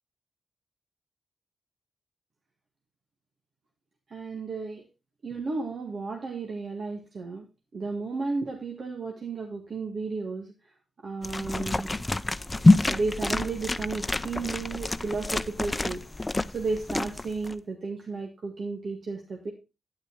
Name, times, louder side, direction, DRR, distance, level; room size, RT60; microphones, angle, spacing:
voice 1, 4.1-4.8 5.2-7.5 7.7-10.5 11.0-11.9 12.9-16.0 16.5-19.5, right 3 dB, 65° right, 1 dB, 1.8 m, -33 dB
sound 1, 11.2-17.5, left 2 dB, 25° left, 0.6 m, -26 dB
9.5 x 9.0 x 3.7 m, 0.27 s
supercardioid pair, 45°, 0 cm